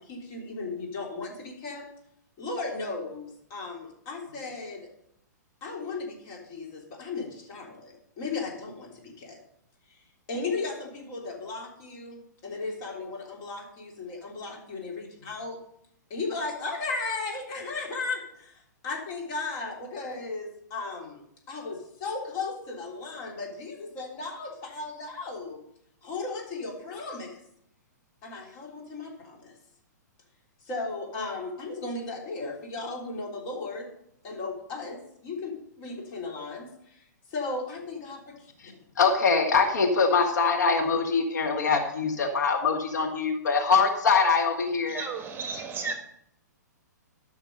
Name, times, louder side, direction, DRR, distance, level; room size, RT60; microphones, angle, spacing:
voice 1, 0.0-1.9 2.4-4.9 5.6-9.4 9.9-15.6 16.1-25.6 26.0-27.4 28.2-29.5 30.6-33.9 34.2-38.5, left 3 dB, 40° left, -1 dB, 3.4 m, -36 dB
voice 2, 39.0-45.1, left 5 dB, 70° left, 4 dB, 1.6 m, -23 dB
voice 3, 44.9-45.9, right 5 dB, 20° right, 6 dB, 1.4 m, -33 dB
13.0 x 5.8 x 5.4 m, 0.73 s
hypercardioid pair, 120°, 10 cm